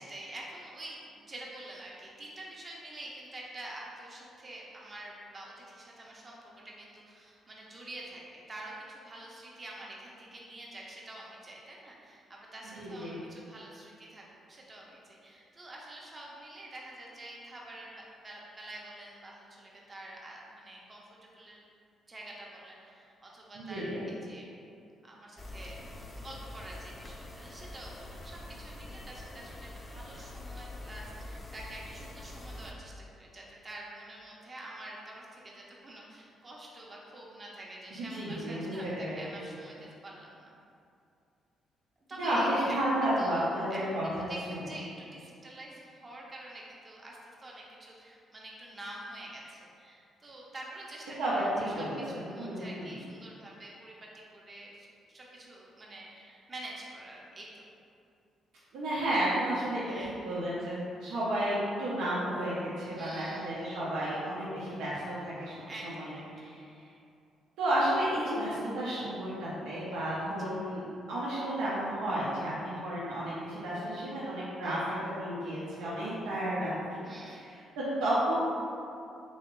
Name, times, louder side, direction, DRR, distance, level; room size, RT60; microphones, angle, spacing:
voice 1, 0.0-21.6 22.1-24.5 25.0-25.8 26.1-40.5 42.1-57.6 59.9-60.1 62.9-63.5 65.7-66.6 70.4-70.5 74.6-74.8 77.0-77.4, right 1 dB, 30° right, -3 dB, 0.7 m, -47 dB
voice 2, 12.8-13.2 23.5-24.0 37.9-39.2 42.2-44.0 44.5-44.7 51.2-52.9 58.7-65.5 65.8-66.6 67.6-77.0 77.3-77.4 77.8-78.3, right 1 dB, 90° right, -8 dB, 0.7 m, -32 dB
sound 1, 25.4-32.7, left 1 dB, 25° left, 0.4 m, -45 dB
3.1 x 2.8 x 3.0 m, 2.5 s
cardioid pair, 90°, 0 cm